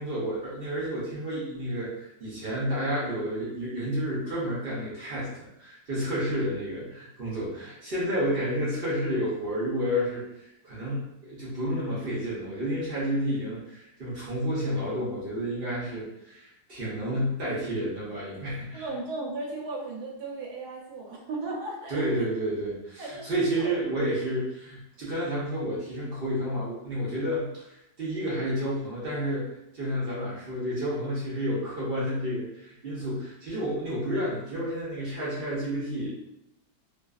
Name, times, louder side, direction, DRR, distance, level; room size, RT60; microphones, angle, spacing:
voice 1, 0.0-10.2 10.6-18.9 21.9-27.6 28.0-29.5 29.7-36.1, equal, 55° right, -7 dB, 0.6 m, -30 dB
voice 2, 18.7-22.0 23.0-23.3 23.5-23.8, right 2 dB, 70° right, -2 dB, 1.1 m, -35 dB
2.6 x 2.5 x 2.3 m, 0.86 s
omnidirectional pair, 1.8 m